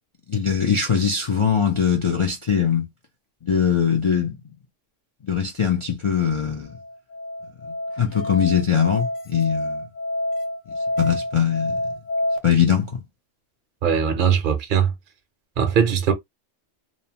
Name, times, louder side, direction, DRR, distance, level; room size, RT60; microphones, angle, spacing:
voice 1, 0.3-2.9 3.4-4.5 5.2-6.7 7.6-9.9 11.0-11.8 12.4-13.0, left 7 dB, 45° left, 0.3 m, -21 dB
Musical instrument, 6.7-12.4, left 1 dB, 85° left, 1.0 m, -28 dB
voice 2, 13.8-14.9 15.6-16.1, right 7 dB, 55° right, 0.7 m, -20 dB
2.7 x 2.1 x 2.8 m
omnidirectional pair, 1.2 m